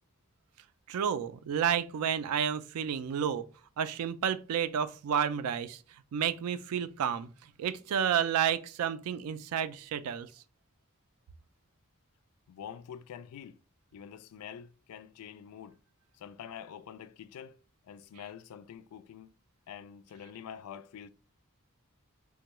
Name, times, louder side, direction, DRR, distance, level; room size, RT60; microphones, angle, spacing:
voice 1, 0.9-3.5 3.8-5.8 6.1-10.3, right 8 dB, 80° right, 0.3 m, -31 dB
voice 2, 12.5-13.6 13.9-15.8 16.2-17.6 17.8-19.3 19.7-21.1, left 8 dB, 85° left, 0.3 m, -46 dB
3.4 x 2.2 x 2.9 m
head